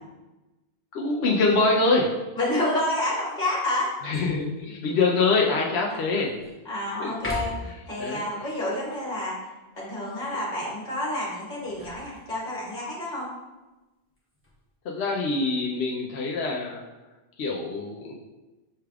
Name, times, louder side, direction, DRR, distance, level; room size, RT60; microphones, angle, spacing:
voice 1, 0.9-2.1 4.0-6.3 7.0-7.1 7.6-8.2 14.8-16.8 17.4-18.1, left 3 dB, 90° left, -1 dB, 0.9 m, -24 dB
voice 2, 2.4-3.9 5.9-6.0 6.6-7.5 7.9-9.4 9.8-13.3, left 1 dB, 45° left, -6 dB, 1.6 m, -29 dB
sound 1, 4.1-4.6 5.1-5.2 5.8-6.6 7.1-7.9 11.4-12.7 14.1-14.6, left 1 dB, 15° left, 0.9 m, -38 dB
6.6 x 3.3 x 2.3 m, 1.1 s
omnidirectional pair, 1.1 m